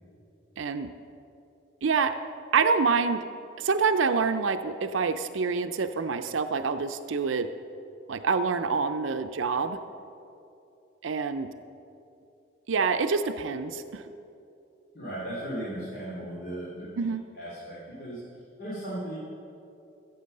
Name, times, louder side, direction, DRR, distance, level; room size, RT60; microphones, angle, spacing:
voice 1, 0.6-0.9 1.8-2.2 2.5-3.3 3.6-7.5 8.1-9.8 11.0-11.5 12.7-14.0 17.0-17.2, right 5 dB, 80° right, 9 dB, 0.5 m, -26 dB
voice 2, 14.9-17.1 17.3-18.2 18.6-19.2, right 1 dB, 50° left, -7 dB, 3.0 m, -36 dB
15.0 x 7.9 x 6.6 m, 2.8 s
head